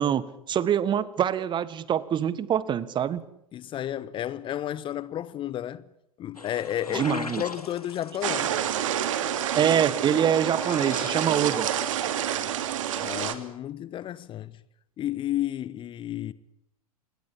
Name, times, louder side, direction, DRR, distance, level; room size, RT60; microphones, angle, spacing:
voice 1, 0.0-3.2 6.9-7.4 9.5-11.7, right 9 dB, 25° right, 1.5 m, -25 dB
voice 2, 3.5-5.8 6.2-8.6 13.0-14.6 15.0-16.3, left 12 dB, 25° left, 1.0 m, -32 dB
sound 1, 6.4-11.7, left 3 dB, 85° left, 2.3 m, -41 dB
sound 2, 8.2-13.3, right 10 dB, 55° right, 2.9 m, -28 dB
27.5 x 21.0 x 8.8 m
figure-of-eight pair, 90°, 19 cm